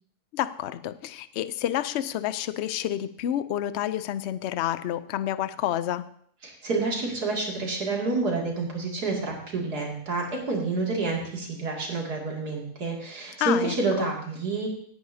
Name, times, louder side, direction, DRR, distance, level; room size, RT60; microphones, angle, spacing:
voice 1, 0.3-6.0 13.4-14.1, left 12 dB, 70° left, 13 dB, 0.6 m, -29 dB
voice 2, 6.4-14.7, right 3 dB, 80° right, -2 dB, 3.0 m, -28 dB
17.5 x 9.7 x 2.7 m, 0.63 s
omnidirectional pair, 1.7 m